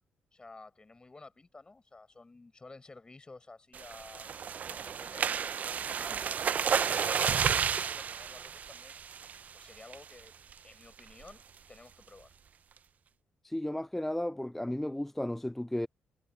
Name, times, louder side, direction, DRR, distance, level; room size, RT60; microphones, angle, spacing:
voice 1, 0.3-4.3 4.7-9.1 9.5-10.3 10.6-12.3, left 3 dB, 30° left, 7.2 m, -54 dB
sound 1, 3.7-9.5 9.9-10.2 10.5-10.6 11.0-11.3, right 7 dB, 55° right, 0.7 m, -32 dB
voice 2, 13.4-15.9, left 1 dB, 5° left, 0.4 m, -34 dB
supercardioid pair, 50°, 3 cm